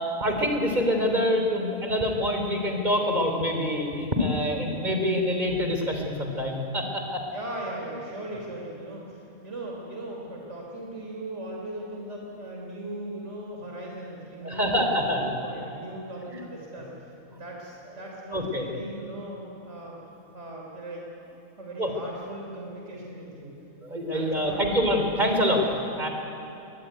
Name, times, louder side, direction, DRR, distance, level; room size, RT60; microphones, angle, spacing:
voice 1, 0.0-7.2 14.4-15.3 16.3-16.4 18.3-18.7 21.8-21.9 23.8-25.7 25.9-26.1, equal, 30° right, 3 dB, 3.6 m, -26 dB
voice 2, 7.3-20.0 20.3-23.5 24.1-24.6, right 1 dB, 50° right, -1 dB, 3.7 m, -38 dB
23.0 x 21.0 x 9.4 m, 3.0 s
omnidirectional pair, 1.5 m